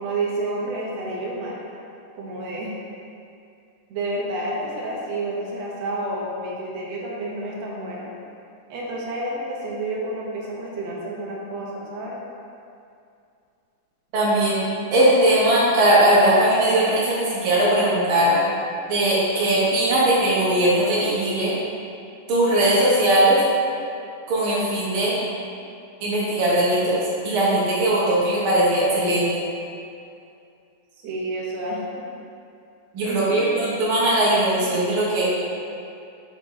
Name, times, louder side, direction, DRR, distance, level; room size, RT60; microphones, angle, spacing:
voice 1, 0.0-1.6 2.2-2.7 3.9-8.1 8.7-12.2 31.0-31.8 33.0-33.7, right 2 dB, 65° right, -4 dB, 1.9 m, -29 dB
voice 2, 14.1-18.4 18.9-21.5 22.3-23.4 24.3-25.2 26.0-27.0 27.2-29.3 32.9-35.3, right 1 dB, 50° right, -7 dB, 1.8 m, -19 dB
6.2 x 4.9 x 3.9 m, 2.5 s
omnidirectional pair, 3.8 m